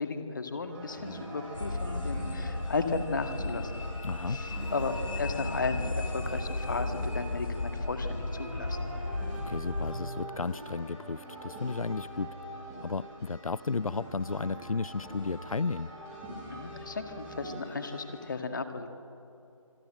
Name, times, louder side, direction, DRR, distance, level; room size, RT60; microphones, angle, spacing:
voice 1, 0.0-3.8 4.3-8.8 16.5-18.9, left 4 dB, 35° left, 7 dB, 1.9 m, -35 dB
sound 1, 0.6-18.3, right 1 dB, 10° right, 5.0 m, -43 dB
sound 2, 1.5-10.0, left 2 dB, 70° left, 2.5 m, -35 dB
Motorcycle / Engine, 2.1-7.7, right 1 dB, 70° right, 7.5 m, -56 dB
voice 2, 4.0-4.4 9.4-12.4 12.8-15.9, left 4 dB, 85° left, 20 dB, 0.5 m, -33 dB
26.0 x 22.5 x 7.8 m, 2.7 s
figure-of-eight pair, 165°, 17 cm